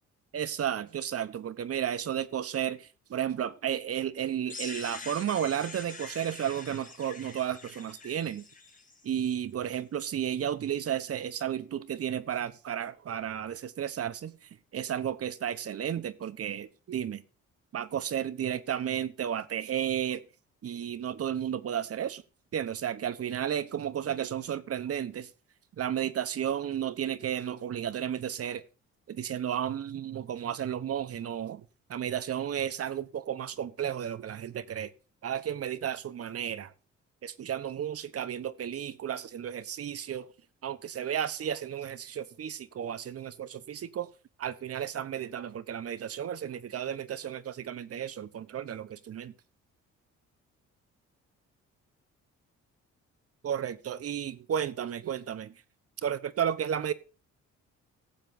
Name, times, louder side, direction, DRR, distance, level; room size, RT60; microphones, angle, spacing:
voice 1, 0.3-8.4 9.0-14.3 14.7-17.2 17.7-20.2 20.6-22.2 22.5-25.3 25.8-28.6 29.1-31.6 31.9-34.9 35.2-36.7 37.2-40.3 40.6-44.1 44.4-49.3 53.4-55.5 56.0-56.9, right 9 dB, 50° right, 1.0 m, -33 dB
sound 1, 4.5-9.3, left 4 dB, 25° left, 2.0 m, -45 dB
18.0 x 7.5 x 2.7 m
cardioid pair, 90°, 30 cm